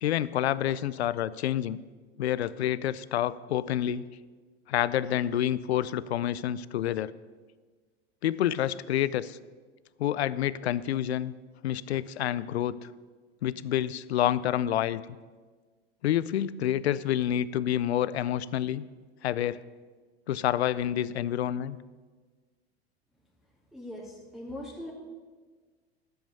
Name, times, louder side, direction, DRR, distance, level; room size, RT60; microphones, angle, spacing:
voice 1, 0.0-1.8 2.2-4.1 4.7-7.1 8.2-9.4 10.0-11.3 11.6-12.8 13.4-15.0 16.0-18.8 19.2-19.6 20.3-21.8, left 11 dB, 75° left, 18 dB, 0.6 m, -28 dB
voice 2, 23.7-24.9, left 1 dB, ahead, -6 dB, 2.3 m, -40 dB
11.5 x 8.0 x 6.9 m, 1.4 s
hypercardioid pair, 85°, 32 cm